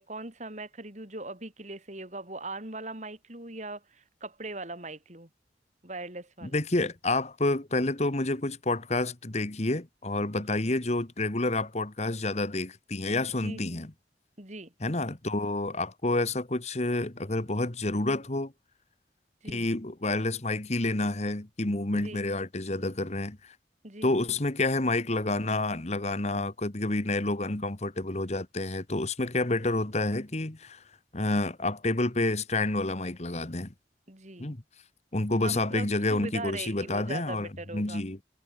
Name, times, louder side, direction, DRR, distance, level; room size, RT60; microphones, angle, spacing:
voice 1, 0.0-5.3 5.8-6.6 10.5-10.7 13.4-13.9 14.4-14.7 19.4-19.7 21.9-22.2 23.8-24.1 34.1-34.6 35.4-38.0, right 2 dB, 40° right, 4.8 m, -40 dB
voice 2, 6.4-13.9 14.8-18.5 19.5-23.5 24.0-30.8 31.1-33.7 34.4-34.6 35.1-37.5 37.7-38.2, left 2 dB, 40° left, 1.5 m, -29 dB
head